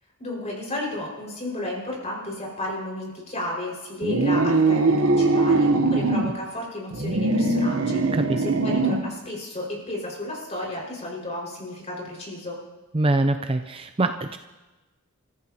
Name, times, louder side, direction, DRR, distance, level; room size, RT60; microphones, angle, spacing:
voice 1, 0.2-12.6, left 1 dB, 30° left, -2 dB, 5.4 m, -33 dB
sound 1, 4.0-6.3 6.9-9.1, right 3 dB, 70° right, 1.0 m, -21 dB
voice 2, 12.9-14.4, right 2 dB, 25° right, 7 dB, 0.5 m, -24 dB
28.5 x 14.5 x 2.9 m, 1.1 s
head